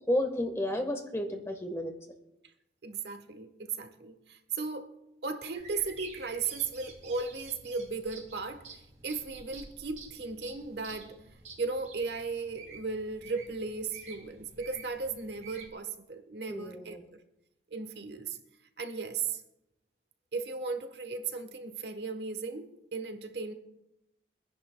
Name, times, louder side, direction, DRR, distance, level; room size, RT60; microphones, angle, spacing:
voice 1, 0.1-1.9 16.5-17.0, left 1 dB, 15° left, 1.3 m, -31 dB
voice 2, 2.8-4.9 5.2-11.2 11.6-17.0 17.7-18.4 18.8-19.4 20.3-23.5, right 4 dB, 70° right, 1.2 m, -36 dB
sound 1, 5.5-15.7, right 4 dB, 40° right, 1.9 m, -50 dB
25.0 x 10.5 x 2.2 m
head